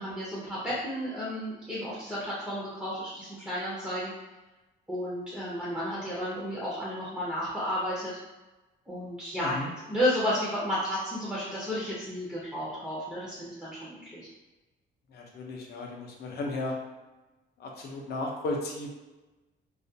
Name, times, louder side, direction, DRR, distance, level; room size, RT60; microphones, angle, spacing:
voice 1, 0.0-4.1 4.9-8.2 8.9-9.6 9.9-14.2, equal, 5° right, -9 dB, 0.5 m, -32 dB
voice 2, 15.1-16.8 17.6-18.9, left 2 dB, 50° left, 0 dB, 0.5 m, -34 dB
2.3 x 2.2 x 2.6 m, 1.1 s
cardioid pair, 160°, 21 cm